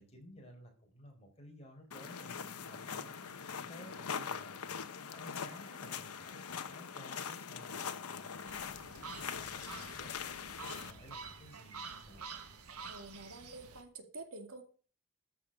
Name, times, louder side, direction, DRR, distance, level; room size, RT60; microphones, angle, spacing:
voice 1, 0.0-12.2, equal, 30° left, 1 dB, 4.5 m, -55 dB
sound 1, 1.9-10.9, left 6 dB, 90° left, 1.0 m, -42 dB
sound 2, 8.5-13.8, right 5 dB, 90° right, 1.6 m, -48 dB
voice 2, 12.8-14.6, right 2 dB, 70° right, 5 dB, 2.3 m, -48 dB
14.0 x 6.3 x 6.1 m, 0.40 s
head